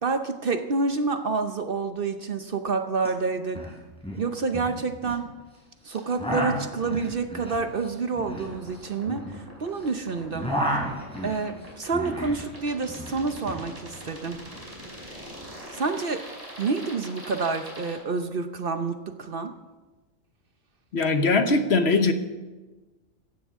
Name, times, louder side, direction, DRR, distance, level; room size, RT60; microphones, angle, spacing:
voice 1, 0.0-3.6 4.2-5.3 5.8-10.5 11.2-14.4 15.7-16.2 16.6-19.5, right 4 dB, 50° right, 7 dB, 0.9 m, -28 dB
sound 1, 3.0-3.1 3.3-3.7 4.0-5.2 5.9-9.9 10.1-12.4 12.7-13.6, equal, 5° left, 4.0 m, -32 dB
sound 2, 8.3-17.9, equal, 30° right, 5.3 m, -42 dB
voice 2, 20.9-22.1, left 3 dB, 55° left, 8 dB, 1.2 m, -21 dB
16.5 x 14.5 x 3.6 m, 1.2 s
omnidirectional pair, 1.3 m